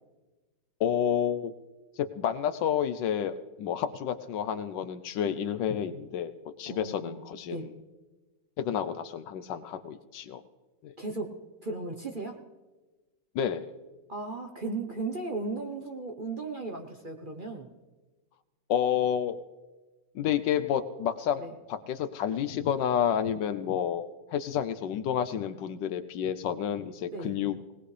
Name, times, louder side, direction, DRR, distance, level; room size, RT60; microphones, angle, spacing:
voice 1, 0.8-1.5 2.0-6.3 6.6-7.8 8.6-10.4 10.8-10.9 13.3-13.7 18.7-19.4 20.1-21.4 21.7-27.6, left 9 dB, 70° left, 11 dB, 1.3 m, -30 dB
voice 2, 6.7-7.2 7.5-7.7 11.0-12.4 14.1-17.7 21.4-21.5 27.1-27.4, right 3 dB, 40° right, 3 dB, 0.8 m, -36 dB
19.0 x 19.0 x 3.3 m, 1.2 s
omnidirectional pair, 2.1 m